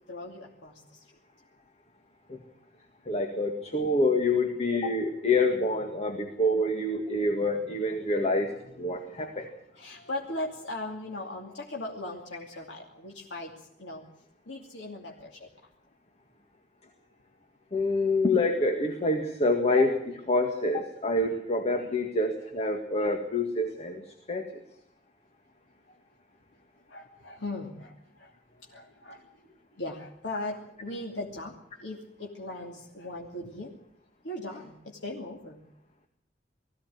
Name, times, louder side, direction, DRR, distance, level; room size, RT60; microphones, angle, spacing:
voice 1, 0.1-1.0 9.3-9.5 9.7-14.1 14.5-15.5 26.9-28.3 28.7-29.2 29.8-31.5 31.8-33.7 34.2-35.6, left 2 dB, 85° left, 0 dB, 2.6 m, -38 dB
voice 2, 3.1-8.5 8.8-9.5 17.7-24.0 24.3-24.5, left 2 dB, 35° left, 4 dB, 1.9 m, -26 dB
20.5 x 15.5 x 9.4 m, 0.76 s
head